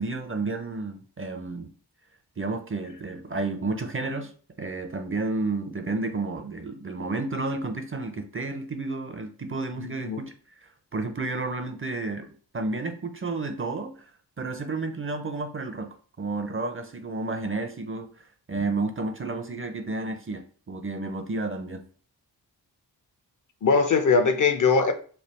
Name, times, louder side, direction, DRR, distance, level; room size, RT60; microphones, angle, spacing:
voice 1, 0.0-1.7 2.4-4.3 4.6-10.3 10.6-12.3 12.5-14.1 14.4-18.1 18.5-21.8, right 3 dB, 30° right, 6 dB, 0.5 m, -31 dB
voice 2, 9.8-10.2 23.6-24.9, left 4 dB, 50° left, 8 dB, 0.6 m, -21 dB
3.3 x 2.3 x 4.1 m, 0.42 s
wide cardioid pair, 65°, 40 cm